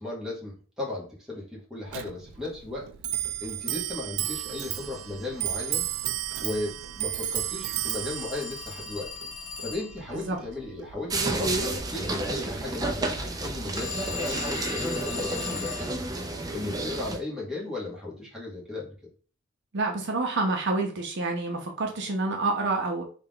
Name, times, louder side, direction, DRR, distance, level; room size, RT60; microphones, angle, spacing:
voice 1, 0.0-5.9 6.4-9.1 9.6-16.0 16.5-18.9, left 2 dB, ahead, -5 dB, 1.2 m, -36 dB
Clock, 1.9-11.8, right 12 dB, 85° right, 0.3 m, -34 dB
Telephone, 7.8-10.1 13.8-16.0, left 9 dB, 75° left, 0.6 m, -38 dB
sound 1, 11.1-17.2, right 2 dB, 20° right, 0.4 m, -30 dB
voice 2, 19.7-23.0, right 3 dB, 60° right, 2 dB, 0.7 m, -28 dB
3.3 x 2.4 x 3.6 m, 0.38 s
head